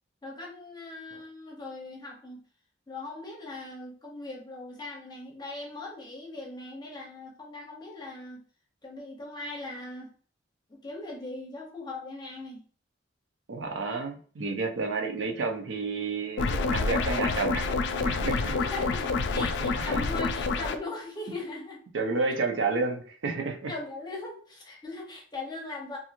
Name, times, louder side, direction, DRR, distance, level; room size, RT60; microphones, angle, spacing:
voice 1, 0.2-2.4 2.9-8.4 8.8-10.1 10.7-12.6 18.1-21.8 23.7-26.0, left 2 dB, 25° left, -1 dB, 0.8 m, -40 dB
voice 2, 13.5-17.7 18.0-18.6 19.3-20.1 21.9-23.7, right 4 dB, 75° right, 3 dB, 0.5 m, -31 dB
sound 1, 16.4-20.8, left 4 dB, 65° left, 0.3 m, -28 dB
2.9 x 2.5 x 2.5 m, 0.44 s
head